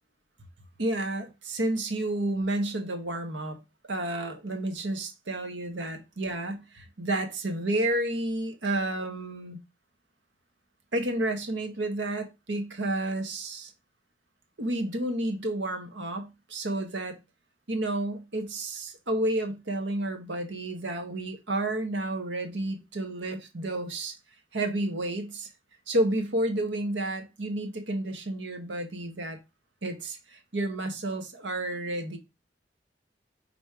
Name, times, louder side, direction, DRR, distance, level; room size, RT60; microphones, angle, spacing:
voice 1, 0.8-3.6 3.9-9.6 10.9-13.7 14.6-17.2 17.7-24.2 24.5-25.5 25.9-29.4 29.8-32.2, right 1 dB, 85° right, 1.4 m, -31 dB
5.4 x 4.1 x 4.8 m
head